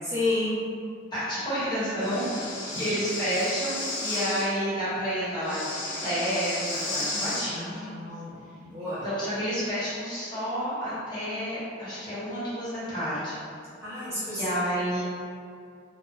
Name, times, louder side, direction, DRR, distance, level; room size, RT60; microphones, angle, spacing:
voice 1, 0.0-0.6 6.8-9.1 13.8-14.6, left 2 dB, 15° right, -13 dB, 0.6 m, -32 dB
voice 2, 1.1-8.1 8.8-13.4 14.3-15.0, equal, 25° left, -13 dB, 0.9 m, -30 dB
Breathing, 2.0-4.5 5.4-7.5, left 2 dB, 75° left, 0.6 m, -33 dB
2.6 x 2.1 x 2.3 m, 2.3 s
head